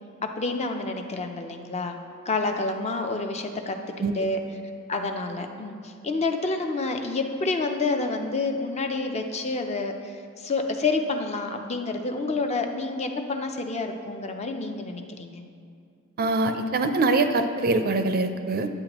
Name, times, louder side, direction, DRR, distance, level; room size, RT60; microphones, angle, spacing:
voice 1, 0.2-2.0 2.3-3.8 4.1-4.4 4.9-15.4, left 3 dB, 30° left, 5 dB, 0.5 m, -28 dB
voice 2, 16.2-18.7, right 3 dB, 45° right, 8 dB, 0.4 m, -23 dB
10.5 x 7.8 x 3.0 m, 2.4 s
head